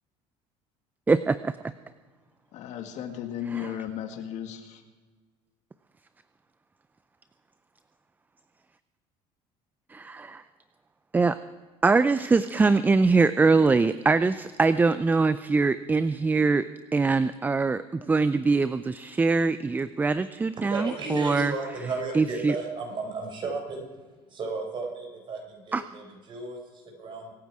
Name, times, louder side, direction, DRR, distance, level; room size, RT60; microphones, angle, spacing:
voice 1, 1.1-1.5 9.9-10.4 11.1-11.4 11.8-16.6 16.9-21.5 22.1-22.5 25.7-25.8, right 4 dB, 15° right, 14 dB, 0.4 m, -23 dB
voice 2, 2.5-4.8, left 9 dB, 60° left, 6 dB, 2.0 m, -35 dB
voice 3, 20.7-23.9 24.3-27.3, right 3 dB, 40° right, 2 dB, 5.0 m, -34 dB
24.5 x 9.3 x 4.8 m, 1.4 s
cardioid pair, 120°, 13 cm